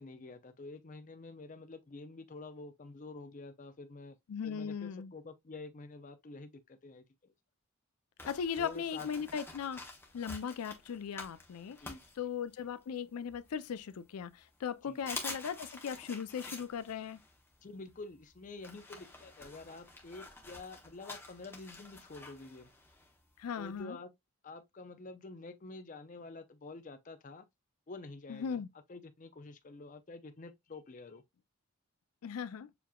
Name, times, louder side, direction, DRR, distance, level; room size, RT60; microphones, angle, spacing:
voice 1, 0.0-4.2 4.4-7.3 8.6-9.1 11.8-12.0 14.8-15.1 17.6-22.7 23.6-24.1 24.4-27.4 27.9-28.6 28.9-31.2, left 3 dB, 35° left, 0.5 m, -48 dB
voice 2, 4.3-5.1 8.2-9.8 10.1-11.8 12.2-17.2 23.4-24.0 28.3-28.7 32.2-32.7, left 7 dB, 90° left, 0.4 m, -38 dB
sound 1, 8.2-12.8 13.3-14.2 14.6-14.7 15.0-23.8, left 2 dB, 10° left, 0.9 m, -48 dB
6.9 x 2.9 x 2.2 m
head